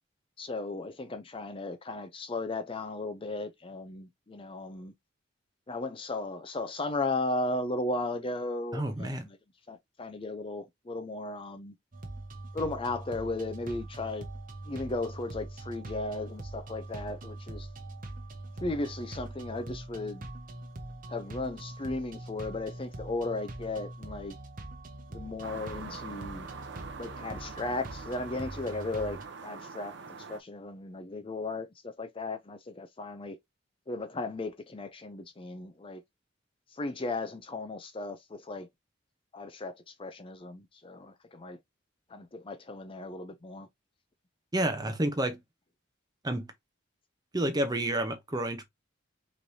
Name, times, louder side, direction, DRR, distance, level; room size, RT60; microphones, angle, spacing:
voice 1, 0.4-4.9 5.7-9.2 9.7-11.7 12.5-14.3 14.7-17.7 18.6-20.3 21.1-24.4 25.1-26.5 27.0-29.2 29.4-29.9 30.3-33.4 33.9-36.0 36.7-38.7 39.3-41.6 42.1-43.7, left 2 dB, 25° left, 0.5 m, -36 dB
voice 2, 8.7-9.3 44.5-45.4 46.2-46.5 47.3-48.6, right 1 dB, 20° right, 0.8 m, -29 dB
sound 1, 11.9-29.2, right 2 dB, 45° right, 1.1 m, -43 dB
sound 2, 25.4-30.4, right 5 dB, 60° right, 0.7 m, -44 dB
5.1 x 3.2 x 2.7 m
head